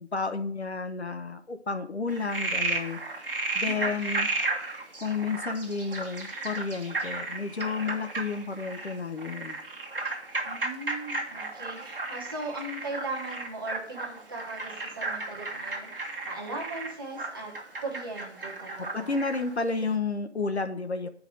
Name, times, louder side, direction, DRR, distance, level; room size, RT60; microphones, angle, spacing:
voice 1, 0.0-3.0 3.5-4.3 5.0-9.6 18.8-21.1, left 4 dB, 65° left, 8 dB, 0.9 m, -31 dB
Frog, 2.1-19.5, right 3 dB, 50° right, 1.4 m, -34 dB
voice 2, 3.6-4.0 10.4-17.5 17.8-19.2, right 2 dB, 20° right, -2 dB, 1.2 m, -38 dB
7.8 x 4.8 x 6.4 m, 0.63 s
figure-of-eight pair, 155°, 36 cm